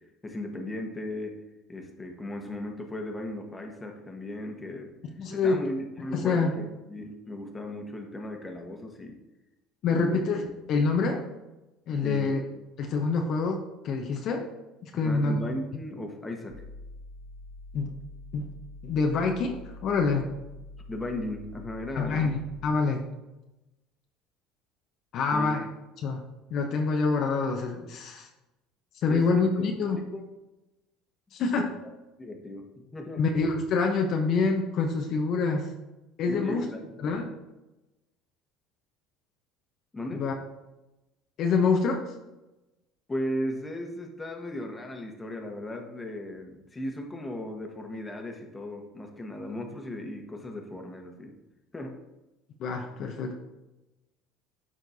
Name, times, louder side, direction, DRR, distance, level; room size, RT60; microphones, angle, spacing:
voice 1, 0.2-1.4 1.7-4.9 5.3-9.2 9.9-10.2 12.0-12.3 14.9-16.6 20.9-22.3 25.3-25.6 29.1-29.7 29.9-30.2 31.6-31.7 32.2-33.2 36.3-36.9 39.9-40.3 43.1-51.3 51.7-52.0, left 1 dB, 15° left, 2 dB, 1.3 m, -36 dB
voice 2, 5.2-5.6 6.1-6.5 9.8-11.2 11.9-12.4 12.8-14.5 14.8-15.4 17.7-17.9 18.3-18.5 18.8-20.3 22.0-23.0 25.1-25.7 26.0-26.2 26.5-28.3 29.0-30.0 31.3-31.7 33.2-35.7 36.2-36.6 37.0-37.3 40.1-40.3 41.4-42.1 52.6-53.3, left 4 dB, 55° left, 3 dB, 0.9 m, -26 dB
sound 1, 16.5-22.7, left 2 dB, 75° right, 2.2 m, -45 dB
12.0 x 4.4 x 2.7 m, 1.0 s
supercardioid pair, 95°, 0 cm